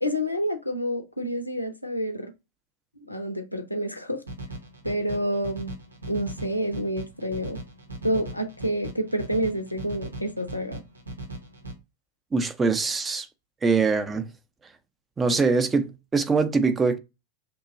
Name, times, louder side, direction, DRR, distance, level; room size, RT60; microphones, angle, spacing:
voice 1, 0.0-2.3 3.0-4.2 4.8-5.7 6.1-7.6 8.0-10.8, equal, 85° left, 0.6 m, -28 dB
sound 1, 4.3-11.7, right 1 dB, 75° right, 0.7 m, -39 dB
voice 2, 12.3-13.3 13.6-14.3 15.2-17.0, right 4 dB, 15° right, 0.4 m, -23 dB
2.8 x 2.3 x 3.8 m
figure-of-eight pair, 90°, 0 cm